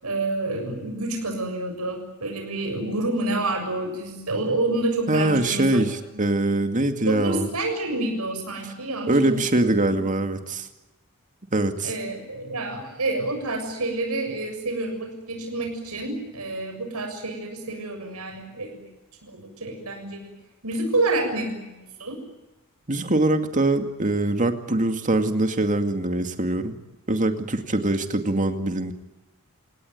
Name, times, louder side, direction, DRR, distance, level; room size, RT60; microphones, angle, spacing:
voice 1, 0.0-5.8 7.1-9.7 11.8-18.8 19.3-20.4 20.6-22.2, right 2 dB, 90° right, 4 dB, 7.0 m, -28 dB
voice 2, 5.1-7.5 9.1-10.7 11.5-11.9 22.9-26.8 27.1-28.9, right 2 dB, 35° right, 6 dB, 2.3 m, -23 dB
29.0 x 18.5 x 9.4 m, 1.0 s
head